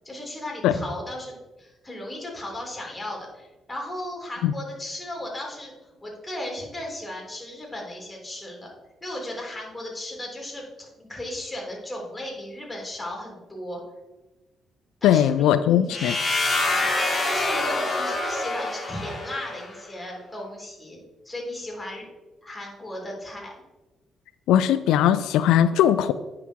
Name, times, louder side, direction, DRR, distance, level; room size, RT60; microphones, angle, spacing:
voice 1, 0.0-8.7 9.0-13.8 15.0-16.0 17.2-22.1 22.4-23.5, left 1 dB, 15° left, -1 dB, 3.5 m, -36 dB
voice 2, 15.0-16.2 24.5-26.1, left 10 dB, 90° left, 12 dB, 0.3 m, -19 dB
sound 1, 15.9-19.7, left 2 dB, 30° left, 2.5 m, -26 dB
9.9 x 5.7 x 4.6 m, 1.1 s
cardioid pair, 90°, 0 cm